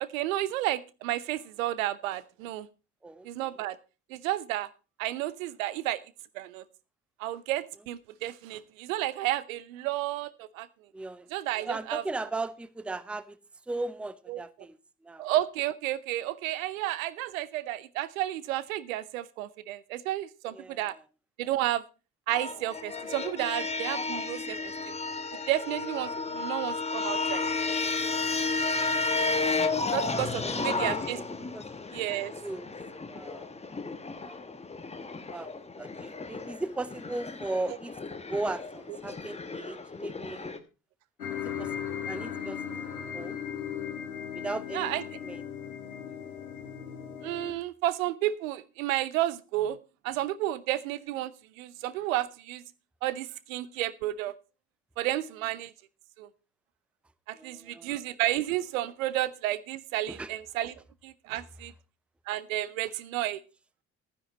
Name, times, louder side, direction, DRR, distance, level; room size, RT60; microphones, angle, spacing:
voice 1, 0.0-2.7 3.2-3.8 4.1-4.7 5.0-6.0 6.3-6.6 7.2-10.7 11.3-12.0 14.3-14.4 15.2-20.9 21.4-21.8 22.3-24.9 25.5-27.5 29.9-31.2 31.9-32.3 44.7-45.0 47.2-49.8 50.0-51.3 51.6-52.6 53.0-54.3 55.0-55.7 56.2-56.3 57.3-60.7 61.0-61.7 62.3-63.4, right 14 dB, 70° right, 0.8 m, -31 dB
voice 2, 3.0-3.5 10.9-11.3 11.6-13.4 13.7-14.8 15.0-15.3 20.5-21.0 30.4-31.3 31.5-31.6 32.4-32.7 33.1-33.9 34.2-34.5 35.3-35.5 35.8-38.0 38.3-40.5 41.4-42.6 43.1-43.4 44.3-44.9 45.2-45.5 57.3-58.0 60.1-60.3, right 2 dB, 5° right, 0.6 m, -37 dB
sound 1, 22.3-40.6, left 3 dB, 15° left, 1.3 m, -33 dB
sound 2, 41.2-47.5, left 8 dB, 85° left, 1.5 m, -37 dB
12.0 x 10.0 x 4.2 m
figure-of-eight pair, 55°, 43 cm